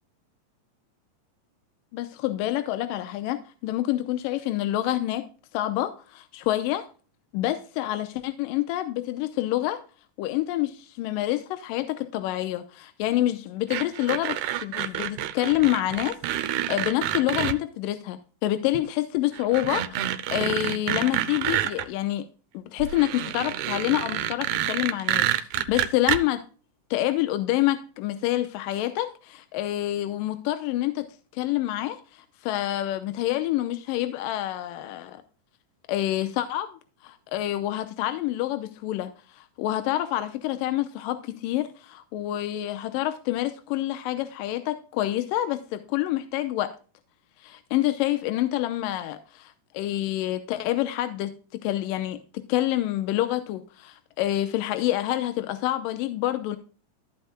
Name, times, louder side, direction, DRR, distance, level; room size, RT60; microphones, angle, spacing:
voice 1, 1.9-5.2 5.5-6.9 7.3-9.8 10.2-22.2 22.5-26.4 26.9-31.1 31.3-35.2 35.9-46.7 47.4-51.3 51.6-52.2 52.5-56.6, left 14 dB, 85° left, 2.4 m, -27 dB
sound 1, 13.7-17.6 18.7-18.8 19.3-21.9 22.8-26.2, right 12 dB, 75° right, 1.9 m, -28 dB
14.0 x 8.0 x 2.2 m
omnidirectional pair, 4.0 m